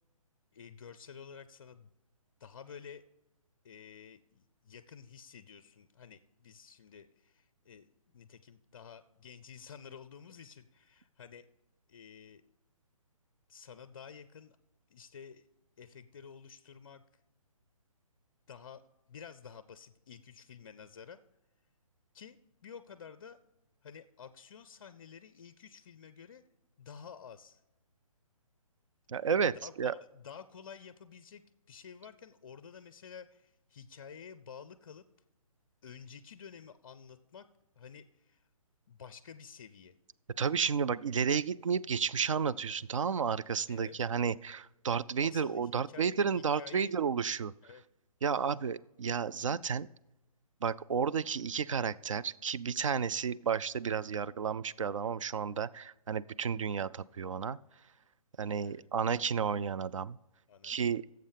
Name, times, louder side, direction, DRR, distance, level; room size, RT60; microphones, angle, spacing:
voice 1, 0.5-1.9 2.4-3.0 3.6-11.5 11.9-12.4 13.5-14.6 14.9-15.4 15.8-17.0 18.5-18.8 19.1-21.2 22.1-22.4 22.6-23.4 23.8-26.4 26.8-27.6 29.6-35.0 35.8-37.5 37.8-38.4 38.9-39.9 43.7-44.0 45.2-46.9 47.6-47.8 58.6-58.9 60.5-61.0, left 7 dB, 40° left, 13 dB, 0.4 m, -51 dB
voice 2, 29.1-29.9 40.4-47.5 48.2-49.9 50.6-57.6 58.4-60.2 60.6-61.0, right 6 dB, 60° right, 17 dB, 0.4 m, -32 dB
17.0 x 7.7 x 3.4 m, 1.0 s
figure-of-eight pair, 140°, 19 cm